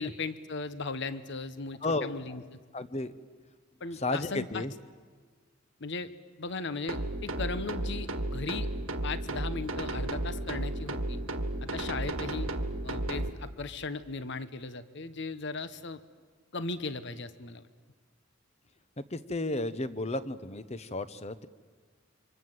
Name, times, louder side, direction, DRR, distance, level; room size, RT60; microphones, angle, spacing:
voice 1, 0.0-2.4 3.8-4.6 5.8-6.1 6.4-8.7 9.0-11.2 11.6-12.5 12.8-16.0 16.5-17.7, left 3 dB, 55° left, 13 dB, 1.0 m, -37 dB
voice 2, 1.8-2.5 2.7-3.1 3.9-4.7 19.1-21.5, left 2 dB, 30° left, 13 dB, 0.9 m, -33 dB
sound 1, 6.9-13.3, right 1 dB, 80° right, 1.7 m, -33 dB
28.0 x 25.5 x 7.9 m, 1.5 s
head